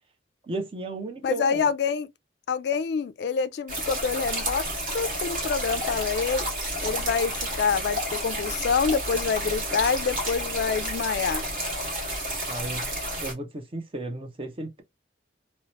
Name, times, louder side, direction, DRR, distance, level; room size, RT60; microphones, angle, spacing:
voice 1, 0.5-1.7 12.5-12.9 13.2-14.8, right 2 dB, 30° right, 0.5 m, -34 dB
voice 2, 1.2-2.1 2.5-4.6 4.9-6.5 6.8-11.4, left 5 dB, 65° left, 0.3 m, -26 dB
sound 1, 3.7-13.3, right 1 dB, 50° right, 1.4 m, -30 dB
2.8 x 2.1 x 2.9 m
head